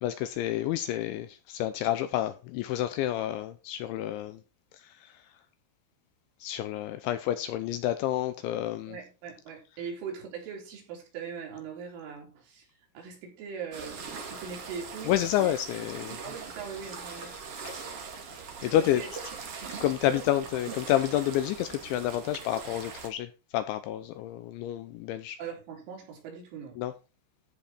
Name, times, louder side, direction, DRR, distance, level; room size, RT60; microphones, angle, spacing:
voice 1, 0.0-4.4 4.7-5.3 6.4-9.0 15.1-16.2 17.6-17.8 18.6-19.0 19.8-25.4 26.8-26.9, left 12 dB, 80° left, 2.8 m, -29 dB
voice 2, 8.9-15.2 15.4-15.5 16.2-17.3 18.8-19.1 19.6-20.5 25.4-26.8, right 6 dB, 70° right, 6.0 m, -41 dB
sound 1, 13.7-23.1, right 5 dB, 85° right, 1.3 m, -41 dB
14.5 x 5.5 x 4.4 m
omnidirectional pair, 5.9 m